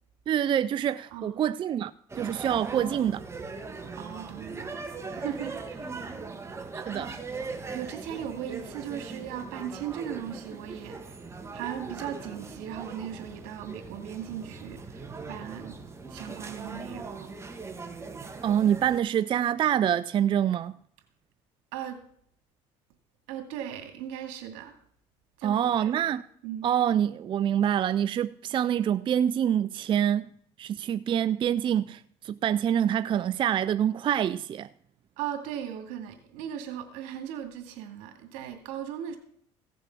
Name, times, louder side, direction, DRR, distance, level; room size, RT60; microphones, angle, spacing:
voice 1, 0.3-1.9 2.2-3.2 6.9-7.2 18.4-20.8 25.4-26.2 26.6-30.3 30.6-34.7, right 9 dB, 40° right, 0.4 m, -26 dB
voice 2, 1.1-1.4 2.7-3.1 3.9-5.9 7.7-11.3 11.5-17.3 21.7-22.0 23.3-24.8 25.4-26.2 26.4-26.7 35.2-39.2, right 10 dB, 85° right, 2.4 m, -38 dB
sound 1, 2.1-19.0, right 4 dB, 20° right, 1.7 m, -40 dB
16.0 x 7.0 x 6.0 m
supercardioid pair, 95°, 13 cm